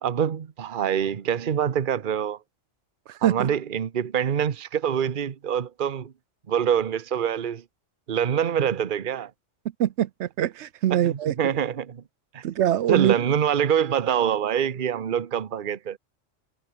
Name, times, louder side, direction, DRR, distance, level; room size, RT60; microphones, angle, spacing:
voice 1, 0.0-2.4 3.2-6.1 6.5-7.6 8.1-9.3 10.9-12.0 12.3-12.4 12.9-16.0, right 8 dB, 45° right, 1.0 m, -25 dB
voice 2, 9.8-11.3 12.4-13.2, right 11 dB, 70° right, 0.9 m, -23 dB
omnidirectional pair, 1.3 m